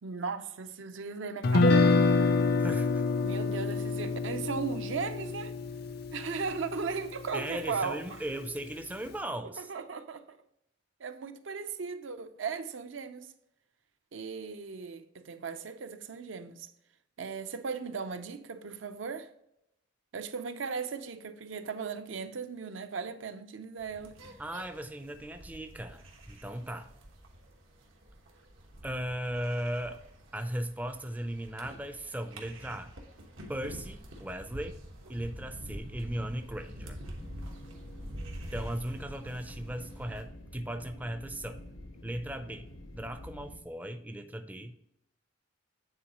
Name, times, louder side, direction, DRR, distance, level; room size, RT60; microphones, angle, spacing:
voice 1, 0.0-2.2 3.2-5.5 6.1-8.2 9.6-10.4 11.0-13.3 14.1-16.7 17.2-19.3 20.1-24.2, right 5 dB, 70° right, 0.5 m, -37 dB
Guitar, 1.4-7.6, left 3 dB, 50° left, 0.4 m, -27 dB
voice 2, 2.6-3.1 7.3-9.7 24.4-26.9 28.8-30.0 30.3-32.9 33.5-34.8 35.1-37.0 38.5-41.6 42.0-42.6 42.9-44.7, right 1 dB, 10° right, 0.4 m, -37 dB
sound 1, 23.8-40.2, equal, 90° right, 1.2 m, -47 dB
sound 2, 37.2-43.6, left 1 dB, 85° left, 1.0 m, -47 dB
8.8 x 4.0 x 2.9 m
head